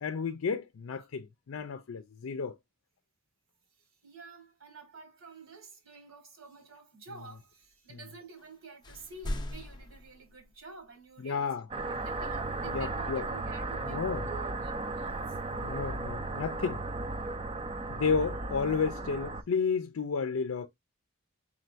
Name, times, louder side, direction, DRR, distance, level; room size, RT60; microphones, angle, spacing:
voice 1, 0.0-2.5 11.2-11.7 12.7-13.3 13.8-14.3 15.5-16.8 17.9-20.7, left 5 dB, 75° left, 0.4 m, -32 dB
voice 2, 3.8-15.4, right 4 dB, 70° right, 1.9 m, -50 dB
sound 1, 8.4-8.5 8.8-10.9, left 1 dB, 20° left, 0.6 m, -40 dB
sound 2, 11.7-19.4, right 2 dB, 25° right, 0.4 m, -35 dB
4.4 x 3.7 x 2.5 m
head